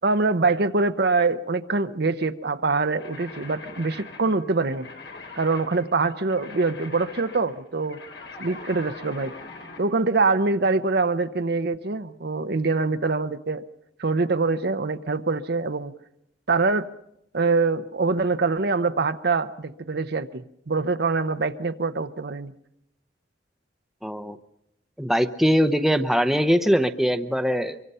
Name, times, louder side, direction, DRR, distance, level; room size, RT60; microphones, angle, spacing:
voice 1, 0.0-4.9 5.4-8.0 8.4-9.3 9.8-13.6 14.0-15.9 16.5-16.9 17.3-22.5, right 3 dB, 65° right, 10 dB, 0.8 m, -24 dB
sound 1, 3.0-9.9, left 3 dB, 80° left, 4.1 m, -42 dB
voice 2, 24.0-24.4 25.0-27.8, equal, ahead, 8 dB, 0.8 m, -22 dB
25.0 x 23.5 x 5.6 m, 0.78 s
head